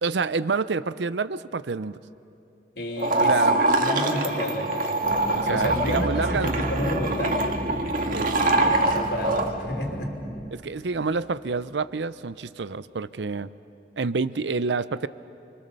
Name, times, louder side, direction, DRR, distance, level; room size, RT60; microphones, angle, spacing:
voice 1, 0.0-2.0 3.2-3.6 5.3-6.6 8.1-8.3 10.5-13.5 14.0-15.1, right 4 dB, 85° right, 15 dB, 0.6 m, -28 dB
voice 2, 2.7-3.4 3.8-4.9 5.2-7.4 8.6-10.2, left 1 dB, 70° left, 2 dB, 3.2 m, -30 dB
sound 1, 3.0-9.5, right 2 dB, 50° right, 1.7 m, -24 dB
sound 2, 5.0-10.5, equal, ahead, 1.0 m, -36 dB
sound 3, 5.7-11.0, right 1 dB, 30° right, 1.3 m, -37 dB
27.0 x 24.5 x 6.9 m, 2.7 s
head